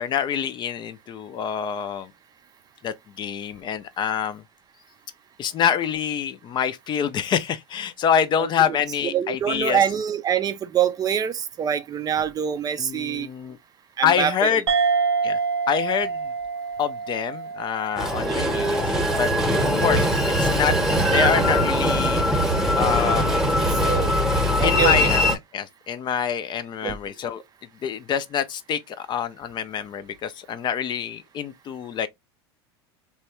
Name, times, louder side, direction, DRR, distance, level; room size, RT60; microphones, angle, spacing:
voice 1, 0.0-2.1 2.8-4.4 5.4-9.8 12.8-13.6 14.0-14.6 15.2-15.4 15.7-16.3 16.8-19.3 19.8-20.1 20.4-20.7 21.0-22.2 22.7-23.3 24.6-25.3 25.5-27.4 27.8-32.1, left 8 dB, 35° left, 0.5 m, -26 dB
voice 2, 9.0-13.3 14.0-14.6 18.3-18.4 23.2-23.3 23.8-24.1 24.6-25.1 26.8-27.0, right 9 dB, 30° right, 0.4 m, -25 dB
sound 1, 14.7-19.6, right 5 dB, 90° right, 0.5 m, -27 dB
Train, 18.0-25.4, equal, 5° right, 0.9 m, -21 dB
3.0 x 2.2 x 2.9 m
hypercardioid pair, 95°, 14 cm